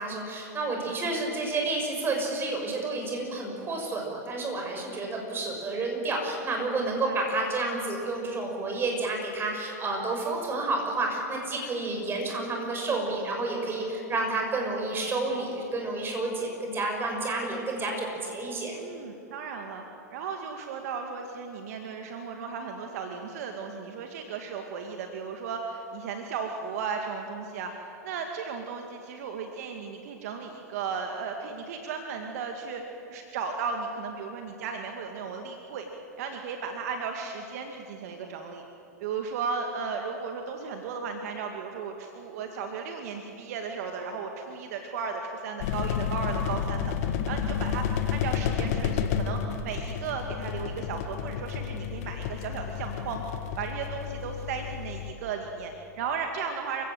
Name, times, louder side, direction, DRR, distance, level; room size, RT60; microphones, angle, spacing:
voice 1, 0.0-18.8, right 2 dB, 25° right, 1 dB, 6.8 m, -30 dB
voice 2, 6.8-7.2 18.7-19.8 20.1-35.9 36.2-38.6 39.0-53.2 53.6-56.8, right 5 dB, 65° right, 4 dB, 2.1 m, -35 dB
sound 1, 45.6-55.1, left 8 dB, 60° left, 1.6 m, -31 dB
28.5 x 17.0 x 7.8 m, 2.9 s
hypercardioid pair, 105°, 9 cm